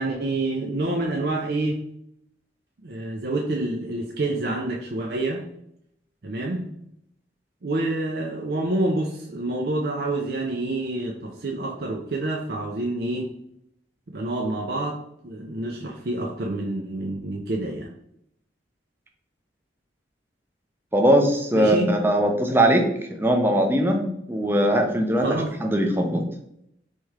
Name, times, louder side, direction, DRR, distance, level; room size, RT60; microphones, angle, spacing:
voice 1, 0.0-1.8 2.8-5.5 6.2-6.7 7.6-13.3 14.1-17.9 21.6-22.0 25.2-25.5, right 2 dB, 60° right, 0 dB, 0.5 m, -27 dB
voice 2, 20.9-25.3 25.6-26.3, right 1 dB, 10° right, 3 dB, 0.6 m, -20 dB
4.2 x 3.5 x 3.2 m, 0.74 s
head